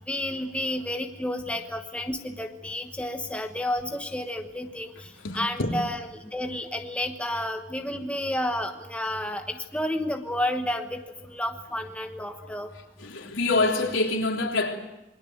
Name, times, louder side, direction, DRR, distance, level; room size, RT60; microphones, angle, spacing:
voice 1, 0.1-12.7, left 1 dB, 5° left, 1.2 m, -31 dB
voice 2, 5.2-5.7 13.0-14.8, left 2 dB, 70° left, 3.6 m, -26 dB
27.5 x 22.0 x 8.0 m
head